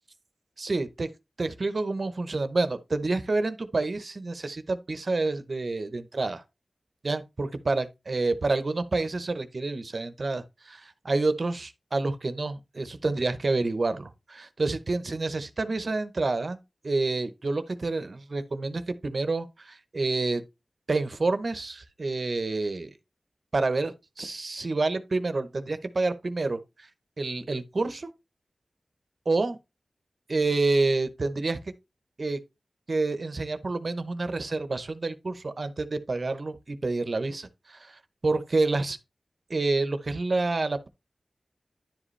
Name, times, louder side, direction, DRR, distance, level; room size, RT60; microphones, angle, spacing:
voice 1, 0.6-1.1 1.4-6.4 7.0-16.6 16.8-20.4 20.9-22.9 23.5-26.6 27.2-28.1 29.3-29.6 30.3-31.6 32.2-32.4 32.9-39.0 39.5-40.9, right 3 dB, 60° right, 0.8 m, -28 dB
10.5 x 5.0 x 3.2 m
cardioid pair, 50°, 0 cm